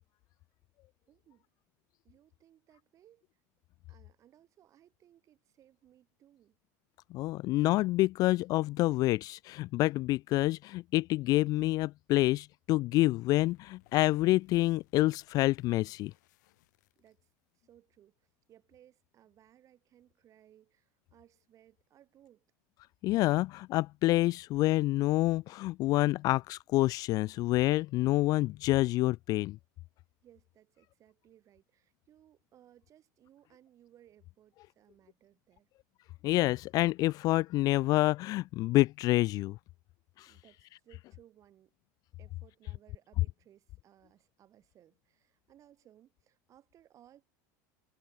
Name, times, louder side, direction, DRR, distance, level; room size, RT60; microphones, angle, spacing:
voice 1, 1.1-1.5 2.0-3.3 3.9-6.6 17.0-17.3 17.5-22.5 30.2-35.7 40.3-41.7 42.2-47.2, right 11 dB, 35° right, 6.9 m, -62 dB
voice 2, 7.1-16.1 23.0-29.6 36.2-39.6 40.2-40.3, left 18 dB, 40° left, 0.3 m, -27 dB
sound 1, 13.3-17.5, left 18 dB, 85° left, 3.9 m, -67 dB
supercardioid pair, 140°, 9 cm